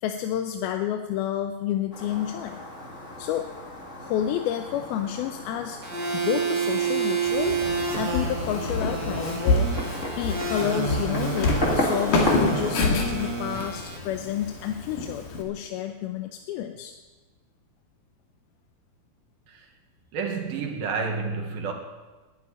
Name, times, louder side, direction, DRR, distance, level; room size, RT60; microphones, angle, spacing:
voice 1, 0.0-2.6 3.2-3.5 4.0-5.8 6.1-7.6 7.9-9.8 10.2-17.0, left 10 dB, 85° left, 6 dB, 2.6 m, -30 dB
Fireworks, 1.9-12.9, left 1 dB, 25° left, 1.9 m, -34 dB
sound 1, 5.8-14.0, right 5 dB, 35° right, 2.0 m, -29 dB
Walk footsteps, 7.3-15.4, left 3 dB, 60° left, 3.5 m, -28 dB
voice 2, 20.1-21.7, right 5 dB, 70° right, 2 dB, 3.5 m, -30 dB
12.0 x 11.0 x 9.9 m, 1.2 s
omnidirectional pair, 4.4 m